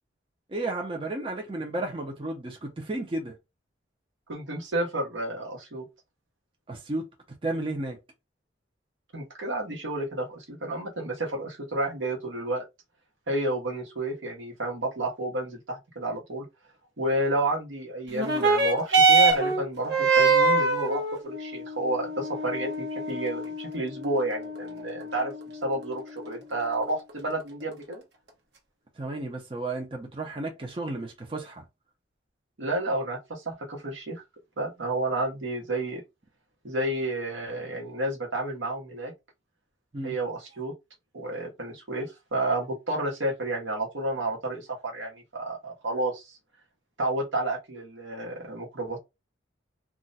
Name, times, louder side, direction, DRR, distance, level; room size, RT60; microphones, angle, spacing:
voice 1, 0.5-3.3 6.7-7.1 7.4-8.0 29.0-31.6 39.9-40.1, right 2 dB, 25° right, 0.5 m, -33 dB
voice 2, 4.3-5.9 9.1-12.6 13.3-16.5 17.0-25.3 25.6-28.0 32.6-34.2 34.6-36.0 36.6-39.1 40.0-40.7 41.1-46.4 47.0-49.0, right 1 dB, 80° right, 1.0 m, -31 dB
sound 1, 18.1-27.1 27.9-28.0, right 4 dB, 65° right, 0.8 m, -25 dB
2.4 x 2.1 x 3.9 m
head